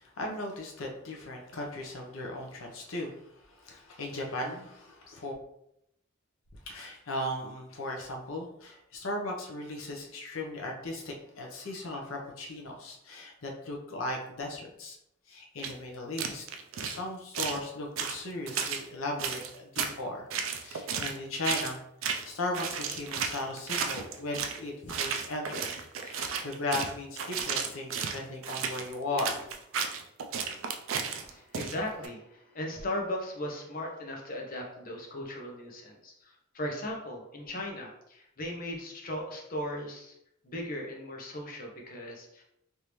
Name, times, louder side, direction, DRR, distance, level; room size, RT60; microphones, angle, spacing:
voice 1, 0.0-5.3 6.7-15.0 15.3-16.5 16.7-20.3 20.6-21.8 22.2-25.7 26.0-29.5, left 1 dB, 85° left, 1 dB, 0.7 m, -37 dB
sound 1, 15.6-15.7 16.2-17.0 17.3-17.6 18.0-18.8 19.2-19.9 20.3-21.2 21.4-21.8 22.0-22.3 22.5-24.6 24.9-32.1, right 6 dB, 75° right, 0.4 m, -33 dB
voice 2, 31.2-40.1 40.4-42.4, left 1 dB, 45° left, 0 dB, 0.8 m, -37 dB
3.4 x 2.7 x 3.0 m, 0.78 s
head